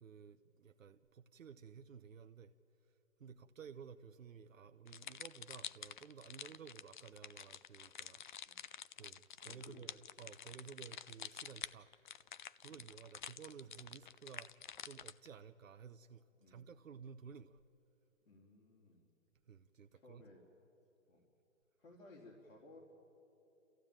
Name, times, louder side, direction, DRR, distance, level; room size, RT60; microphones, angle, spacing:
voice 1, 0.0-2.5 3.2-8.2 9.0-11.9 12.6-14.5 14.8-17.6 19.5-20.2, right 7 dB, 80° right, 7 dB, 0.9 m, -54 dB
sound 1, 4.9-15.3, left 9 dB, 40° left, 0.5 m, -49 dB
voice 2, 9.4-9.8 12.7-12.8 16.4-16.6 18.3-19.1 19.9-20.4 21.1-21.2 21.8-22.8, left 2 dB, 80° left, -4 dB, 3.9 m, -59 dB
29.0 x 15.0 x 8.8 m, 3.0 s
hypercardioid pair, 140°, 39 cm